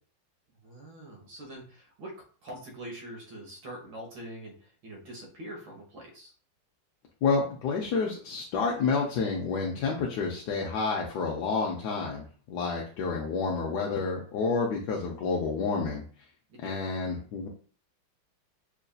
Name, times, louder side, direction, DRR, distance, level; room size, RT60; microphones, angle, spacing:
voice 1, 0.6-2.1 2.4-6.3 16.6-16.7, right 1 dB, 70° right, -1 dB, 1.9 m, -44 dB
voice 2, 7.2-16.0 16.6-17.5, left 4 dB, 70° left, -1 dB, 1.1 m, -29 dB
5.8 x 2.6 x 2.3 m, 0.42 s
omnidirectional pair, 2.2 m